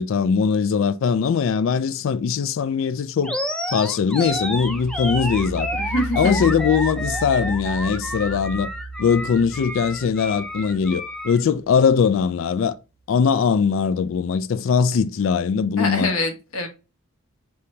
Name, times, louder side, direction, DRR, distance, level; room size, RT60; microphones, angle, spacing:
voice 1, 0.0-3.4 3.7-5.7 6.2-8.7 9.0-12.8 13.1-16.1, left 6 dB, 65° left, 0.3 m, -21 dB
Animal, 3.2-11.4, equal, 5° left, 0.5 m, -30 dB
sound 1, 4.2-11.9, right 3 dB, 60° right, 1.1 m, -34 dB
voice 2, 5.7-6.5 15.8-16.7, left 2 dB, 85° left, 1.2 m, -25 dB
5.4 x 2.8 x 3.2 m
head